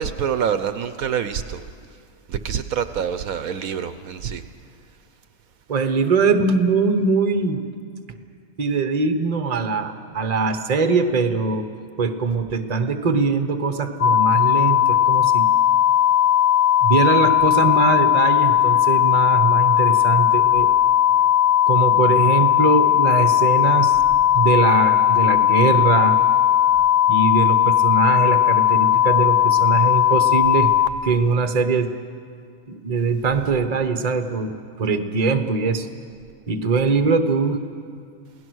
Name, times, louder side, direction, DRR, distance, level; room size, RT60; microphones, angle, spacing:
voice 1, 0.0-1.6 2.3-4.4, right 8 dB, 70° right, 10 dB, 1.2 m, -26 dB
voice 2, 5.7-7.7 8.6-11.7 12.0-15.5 16.8-20.7 21.7-24.0 24.3-26.2 27.1-30.7 31.0-31.9 32.7-35.9 36.5-37.7, right 4 dB, 30° right, 7 dB, 1.0 m, -21 dB
sound 1, 14.0-30.9, left 11 dB, 65° left, 1.0 m, -17 dB
28.5 x 17.0 x 6.3 m, 2.2 s
omnidirectional pair, 1.6 m